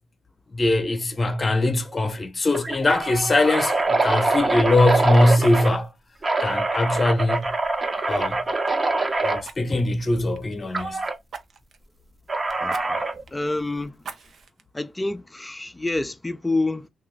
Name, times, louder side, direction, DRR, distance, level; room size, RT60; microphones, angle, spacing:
voice 1, 0.5-5.9 6.4-7.5 8.0-8.4 9.2-11.0, left 2 dB, 35° left, 0.8 m, -21 dB
sound 1, 1.3-1.6 1.9-2.0 2.5-5.8 6.2-9.4 10.7-11.2 12.3-13.2, right 2 dB, 35° right, 0.8 m, -24 dB
Fire, 7.3-7.5 9.4-10.9 11.3-11.9 12.7-12.9 13.3-13.4 14.0-14.6 15.2-15.3, right 6 dB, 70° right, 0.6 m, -41 dB
voice 2, 12.6-13.0 13.3-14.0 14.7-16.9, left 2 dB, 15° left, 0.4 m, -28 dB
2.9 x 2.4 x 3.2 m
cardioid pair, 65°, 0 cm